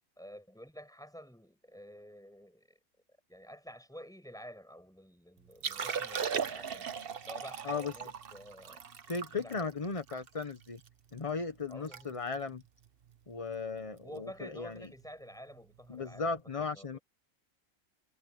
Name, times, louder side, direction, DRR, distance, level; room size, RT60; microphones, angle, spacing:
voice 1, 0.2-2.8 3.3-6.9 7.3-8.8 9.3-9.7 11.7-12.1 14.0-17.0, equal, ahead, 5.8 m, -50 dB
Liquid, 5.5-10.9 11.3-11.4 11.7-12.0 12.3-12.5 13.1-13.4 14.8-14.9, right 6 dB, 45° right, 1.0 m, -38 dB
voice 2, 9.1-10.8 11.1-12.6 13.3-14.9 15.9-17.0, left 4 dB, 25° left, 1.0 m, -36 dB
omnidirectional pair, 1.4 m